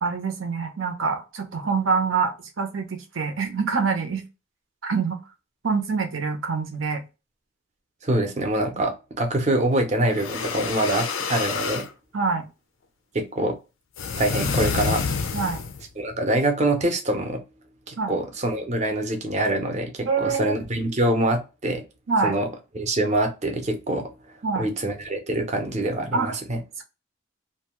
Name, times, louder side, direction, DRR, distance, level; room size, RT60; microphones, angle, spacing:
voice 1, 0.0-4.2 4.8-5.2 5.6-7.0 12.1-12.5 15.3-15.6 18.0-18.2 20.1-20.6 22.1-22.4 24.4-24.7 26.1-26.4 26.8-26.9, right 5 dB, 85° right, 5 dB, 0.7 m, -25 dB
voice 2, 8.0-11.9 13.1-13.5 14.2-15.0 16.0-17.4 17.9-21.8 22.2-22.5 22.7-24.1 24.6-26.6, right 1 dB, 35° right, 4 dB, 0.6 m, -25 dB
sound 1, 10.1-11.9 14.0-15.9, left 5 dB, 80° left, 0.4 m, -28 dB
2.6 x 2.3 x 2.9 m, 0.28 s
head